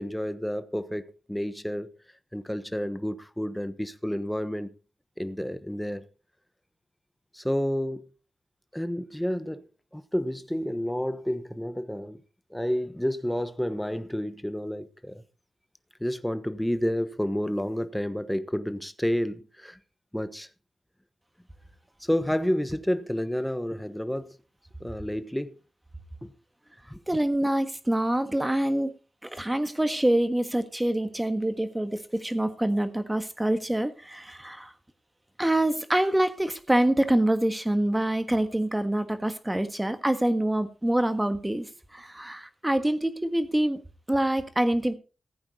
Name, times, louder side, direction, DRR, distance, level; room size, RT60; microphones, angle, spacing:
voice 1, 0.0-1.9 2.3-4.7 5.2-6.1 7.3-8.1 8.7-9.6 9.9-12.2 12.5-15.2 16.0-19.8 20.1-20.5 22.0-24.3 24.8-25.5 26.2-26.3 26.9-27.0, equal, 5° left, 1.1 m, -30 dB
voice 2, 27.1-28.9 29.2-34.7 35.4-43.8 44.1-44.9, right 1 dB, 10° right, 1.5 m, -26 dB
15.0 x 8.7 x 4.2 m
cardioid pair, 80°, 0 cm